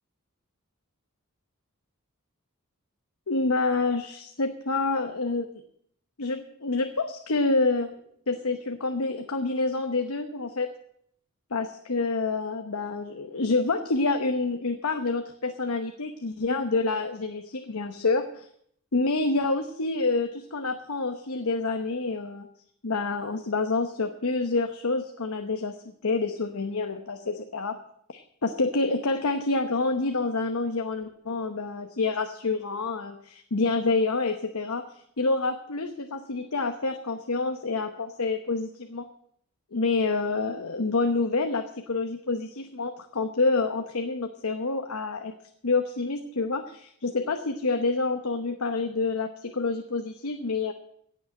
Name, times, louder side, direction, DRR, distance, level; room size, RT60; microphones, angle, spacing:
voice 1, 3.3-5.5 6.2-7.9 8.3-10.7 11.5-18.5 18.9-22.5 22.8-27.8 28.1-34.8 35.2-39.1 39.7-45.3 45.6-50.7, left 3 dB, 80° left, 6 dB, 0.9 m, -27 dB
17.0 x 6.2 x 8.7 m, 0.68 s
head